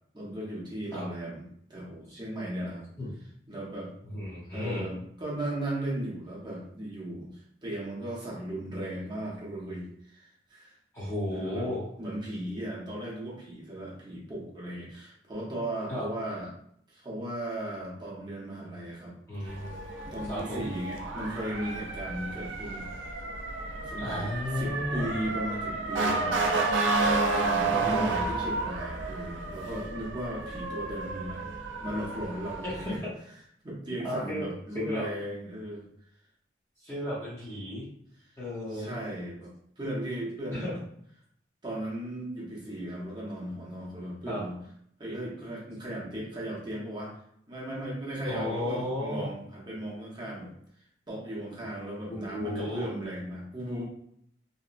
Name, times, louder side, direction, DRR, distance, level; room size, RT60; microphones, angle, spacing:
voice 1, 0.1-1.4 1.7-2.8 3.5-3.9 4.5-10.7 11.3-11.7 12.0-16.5 16.9-19.1 19.4-19.6 20.1-22.9 23.8-24.3 24.5-33.0 33.6-35.9 38.7-40.7 41.6-44.6 45.0-47.1 47.5-50.5 51.1-53.8, right 1 dB, 25° right, -5 dB, 0.8 m, -36 dB
voice 2, 4.0-4.9 10.9-11.8 15.9-16.1 19.3-19.8 20.3-20.7 24.0-25.1 26.6-26.8 27.7-28.2 32.6-33.1 34.0-34.4 34.7-35.1 36.8-37.9 38.4-38.9 40.5-40.7 44.3-44.4 48.2-49.3 52.1-52.9, left 1 dB, 15° left, -10 dB, 0.7 m, -34 dB
Motor vehicle (road) / Siren, 19.5-33.0, right 3 dB, 90° right, 0.4 m, -31 dB
2.8 x 2.1 x 2.4 m, 0.68 s
head